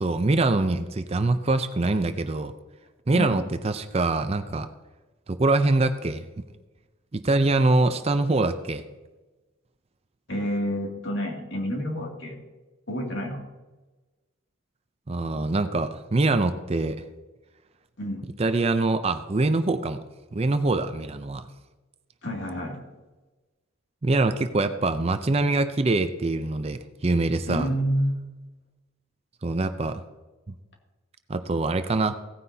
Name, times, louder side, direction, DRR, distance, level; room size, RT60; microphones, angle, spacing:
voice 1, 0.0-2.5 3.1-4.7 5.3-6.2 7.1-8.8 15.1-17.0 18.4-20.0 20.3-21.5 24.0-27.7 29.4-30.0 31.3-32.2, right 2 dB, 30° right, 9 dB, 0.5 m, -24 dB
voice 2, 3.1-3.4 10.3-12.4 12.9-13.4 18.0-18.3 22.2-22.8 27.5-28.1, equal, 55° left, 0 dB, 2.4 m, -29 dB
17.0 x 9.6 x 2.8 m, 1.2 s
head